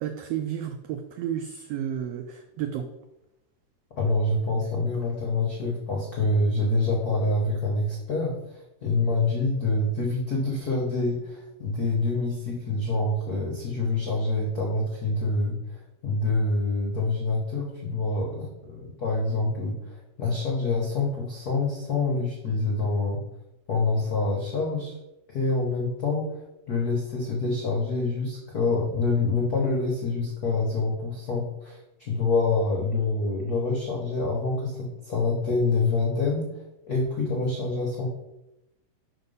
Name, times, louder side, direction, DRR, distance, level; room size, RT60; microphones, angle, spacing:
voice 1, 0.0-2.8, right 10 dB, 80° right, 6 dB, 1.4 m, -32 dB
voice 2, 4.0-23.2 23.7-25.0 25.3-26.3 26.7-36.5 36.9-38.1, left 3 dB, 70° left, -2 dB, 0.8 m, -26 dB
5.7 x 4.4 x 5.3 m, 0.90 s
omnidirectional pair, 3.3 m